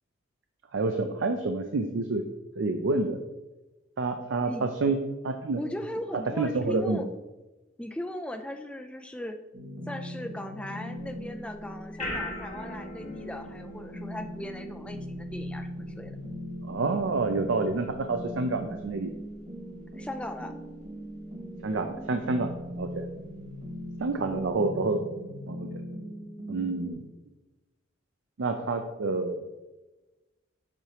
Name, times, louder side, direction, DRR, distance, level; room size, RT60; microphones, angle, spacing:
voice 1, 0.7-2.2 2.6-3.2 4.0-5.6 6.4-7.1 16.6-19.1 21.6-23.1 24.0-25.0 25.5-25.7 26.5-27.1 28.4-29.4, right 3 dB, 70° right, 6 dB, 0.5 m, -28 dB
voice 2, 5.6-7.1 7.8-9.4 9.9-16.2 19.9-20.5, left 1 dB, 5° left, 5 dB, 0.3 m, -38 dB
sound 1, 9.5-26.9, equal, 45° right, 1.5 m, -40 dB
sound 2, 11.0-24.5, left 1 dB, 35° left, 1.5 m, -45 dB
7.5 x 2.9 x 4.8 m, 1.1 s
head